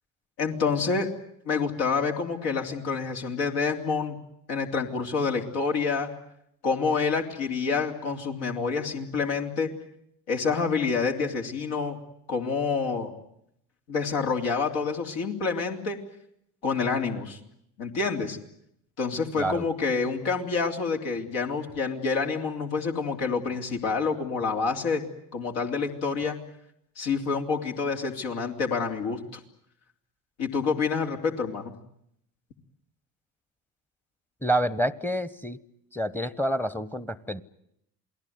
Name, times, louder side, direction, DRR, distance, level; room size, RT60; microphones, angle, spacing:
voice 1, 0.4-1.1 1.4-4.2 4.5-6.1 6.6-9.7 10.3-12.0 12.3-13.1 13.9-16.0 16.6-17.4 17.8-18.4 19.0-25.0 25.3-26.4 27.0-29.4 30.4-31.7, left 5 dB, 65° left, 3 dB, 3.4 m, -27 dB
voice 2, 34.4-35.6 35.9-37.4, right 1 dB, 5° left, 19 dB, 1.1 m, -28 dB
28.0 x 19.5 x 9.5 m, 0.76 s
hypercardioid pair, 60°, 46 cm